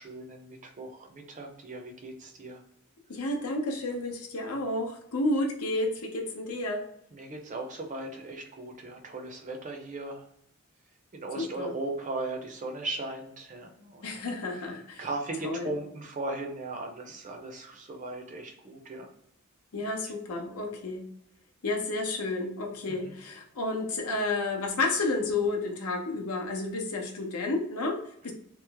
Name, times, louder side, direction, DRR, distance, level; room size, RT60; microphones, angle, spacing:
voice 1, 0.0-2.6 7.1-10.3 11.1-14.1 14.5-14.6 15.0-19.1 22.9-23.1, right 2 dB, 35° right, 2 dB, 0.6 m, -37 dB
voice 2, 3.1-6.9 11.4-11.7 14.0-15.1 15.4-15.8 19.7-21.1 21.6-28.3, left 2 dB, 80° left, 2 dB, 0.7 m, -31 dB
3.0 x 2.0 x 3.3 m, 0.72 s
head